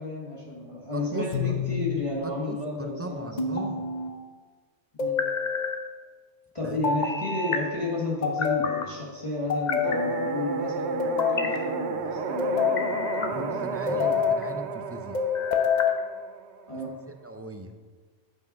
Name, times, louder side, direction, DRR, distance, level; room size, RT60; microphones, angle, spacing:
voice 1, 0.0-3.8 5.0-5.2 6.5-14.2 16.7-17.0, left 2 dB, 30° left, -3 dB, 1.3 m, -32 dB
voice 2, 0.9-1.5 2.2-3.9 6.6-6.8 13.3-15.2 17.2-17.7, right 1 dB, 20° right, 5 dB, 0.4 m, -38 dB
sound 1, 1.3-2.0 3.4-4.1 5.0-5.8 6.8-7.6 8.2-8.9 9.5-10.3 11.0-11.6 12.4-13.3 13.9-14.4 15.1-16.0, left 6 dB, 45° left, 0.8 m, -27 dB
sound 2, 9.8-16.8, right 5 dB, 85° right, 0.9 m, -32 dB
8.2 x 5.4 x 5.2 m, 1.4 s
omnidirectional pair, 1.1 m